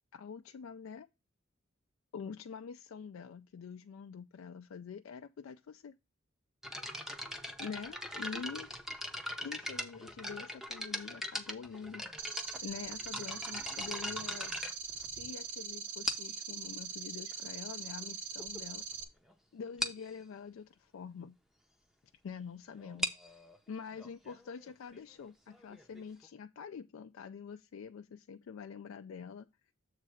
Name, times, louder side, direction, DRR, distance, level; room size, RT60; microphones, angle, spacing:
voice 1, 0.1-1.1 2.1-5.9 7.6-8.7 9.4-12.0 12.6-14.6 15.0-18.8 19.5-21.4 22.2-29.7, left 6 dB, 75° left, 0.3 m, -46 dB
sound 1, 6.6-15.5 16.0-16.5 17.3-17.4 18.0-18.1 18.4-18.6 18.9-19.0 19.3-19.4 19.8-20.1 22.8-26.3, left 1 dB, ahead, 0.6 m, -40 dB
sound 2, 12.2-19.0, right 6 dB, 55° right, 0.9 m, -42 dB
7.5 x 3.3 x 6.2 m
head